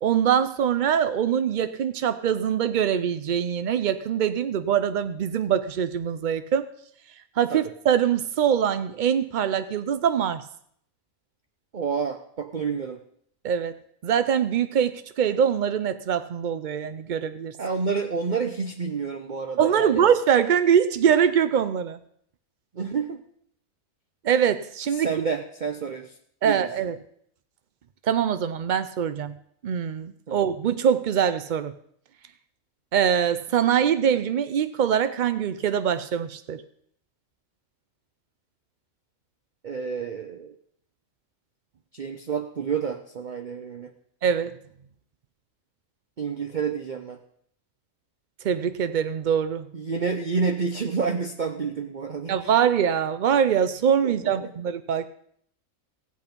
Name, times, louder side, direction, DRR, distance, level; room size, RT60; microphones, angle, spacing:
voice 1, 0.0-6.6 7.4-10.4 13.4-13.7 14.0-17.5 19.6-22.0 24.2-25.1 26.4-26.9 28.0-29.3 29.6-31.7 32.9-36.6 44.2-44.6 48.4-49.6 52.3-55.1, right 8 dB, 80° right, 12 dB, 0.4 m, -23 dB
voice 2, 11.7-13.0 17.6-20.0 22.7-23.2 24.9-26.1 26.4-26.7 30.3-30.4 39.6-40.5 41.9-43.9 46.2-47.2 49.7-52.5 54.0-54.5, right 5 dB, 45° right, 6 dB, 0.7 m, -29 dB
15.5 x 8.3 x 5.2 m, 0.67 s
omnidirectional pair, 1.5 m